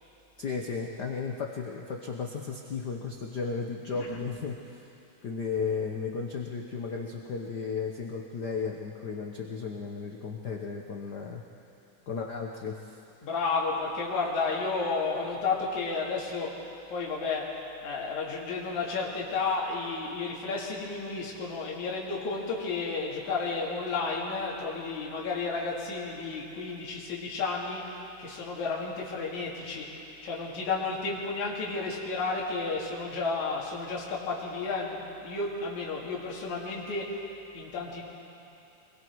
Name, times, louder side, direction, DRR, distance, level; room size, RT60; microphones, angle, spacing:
voice 1, 0.4-4.9 5.2-11.4 12.1-13.0, left 5 dB, 85° left, 0 dB, 0.9 m, -34 dB
voice 2, 13.2-16.6 16.9-17.5 17.8-37.2 37.5-38.0, left 4 dB, 70° left, -4 dB, 3.7 m, -32 dB
25.5 x 21.5 x 4.7 m, 2.7 s
omnidirectional pair, 3.6 m